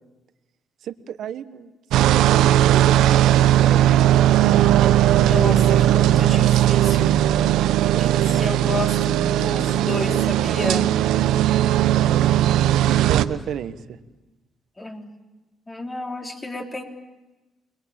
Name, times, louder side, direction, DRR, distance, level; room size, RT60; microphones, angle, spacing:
voice 1, 0.8-3.9 12.0-12.4 12.9-14.0, right 9 dB, 75° right, 11 dB, 1.3 m, -32 dB
sound 1, 1.9-13.2, right 12 dB, 90° right, 0.9 m, -18 dB
voice 2, 5.1-7.1 7.9-10.9 14.8-15.1 15.7-16.8, left 2 dB, 20° left, 3 dB, 3.6 m, -31 dB
29.5 x 22.0 x 8.9 m, 1.1 s
cardioid pair, 90°, 0 cm